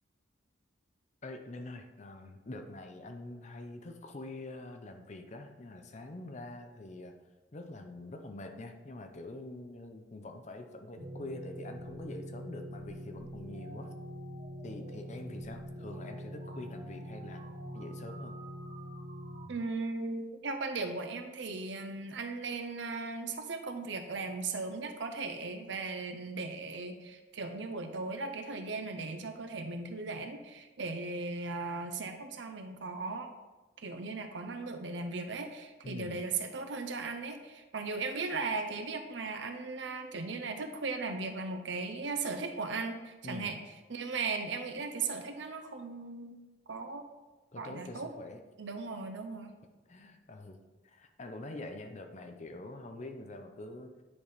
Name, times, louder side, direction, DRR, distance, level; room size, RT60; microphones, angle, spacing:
voice 1, 1.2-7.2 7.5-13.9 14.6-17.4 17.7-18.4 35.8-36.2 43.2-43.6 47.5-48.4 49.9-50.6 50.8-53.9, left 2 dB, 35° left, 6 dB, 0.6 m, -45 dB
sound 1, 11.0-19.5, equal, 45° right, 1.0 m, -44 dB
voice 2, 19.5-33.3 33.8-43.6 43.9-46.4 46.7-47.0 47.6-48.1 48.6-49.5, right 3 dB, 70° right, 6 dB, 0.7 m, -37 dB
9.7 x 3.4 x 4.0 m, 1.2 s
head